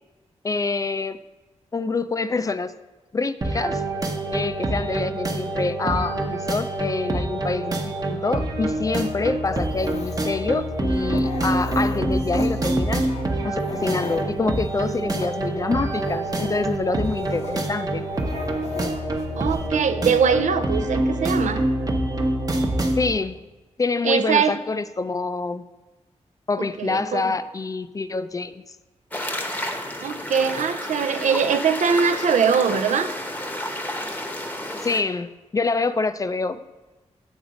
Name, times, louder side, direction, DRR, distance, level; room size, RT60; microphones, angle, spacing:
voice 1, 0.4-1.2 1.7-2.7 3.1-3.8 4.3-13.0 13.4-18.0 23.0-23.4 23.8-25.6 26.5-28.6 34.8-36.6, left 3 dB, 30° left, 12 dB, 0.3 m, -26 dB
sound 1, 3.4-23.1, right 1 dB, 30° right, 0.8 m, -26 dB
Dog, 9.4-19.7, left 4 dB, 65° left, 0.7 m, -38 dB
voice 2, 19.4-21.6 24.0-24.6 26.6-27.3 30.0-33.1, right 6 dB, 85° right, 8 dB, 0.5 m, -22 dB
sound 2, 29.1-35.0, left 1 dB, 15° left, 0.8 m, -31 dB
7.9 x 4.0 x 5.0 m, 1.2 s
wide cardioid pair, 80°, 12 cm